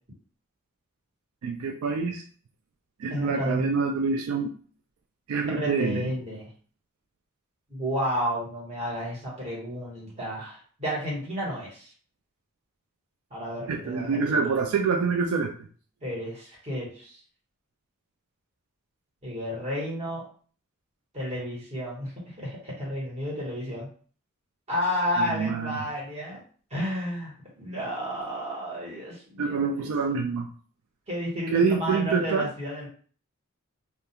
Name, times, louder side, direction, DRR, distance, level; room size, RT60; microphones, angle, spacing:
voice 1, 1.4-2.2 3.0-4.5 5.3-6.1 13.7-15.5 25.2-25.8 29.4-30.5 31.5-32.5, right 5 dB, 75° right, 2 dB, 0.3 m, -26 dB
voice 2, 3.1-3.7 5.5-6.5 7.7-11.9 13.3-14.6 16.0-17.2 19.2-20.2 21.1-23.9 24.7-26.4 26.7-29.9 31.1-32.9, equal, 30° right, -5 dB, 1.2 m, -32 dB
2.3 x 2.3 x 2.8 m, 0.43 s
head